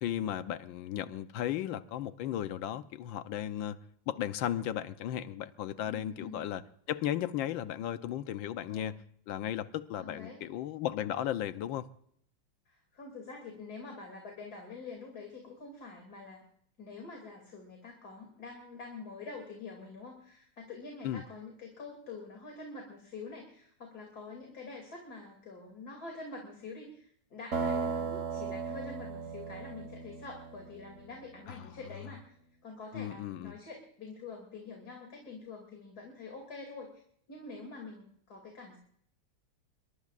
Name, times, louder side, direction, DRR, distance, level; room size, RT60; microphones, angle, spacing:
voice 1, 0.0-3.8 4.1-9.0 9.3-11.9 21.0-21.2 31.6-31.7 32.9-33.6, left 11 dB, 75° left, 1.5 m, -35 dB
voice 2, 5.8-6.4 8.7-9.0 10.0-10.4 12.7-16.4 16.8-32.3 32.6-37.0 37.3-38.8, left 3 dB, 50° left, 3.3 m, -46 dB
sound 1, 27.5-31.3, right 5 dB, 40° right, 1.6 m, -36 dB
22.5 x 22.5 x 2.5 m
omnidirectional pair, 2.2 m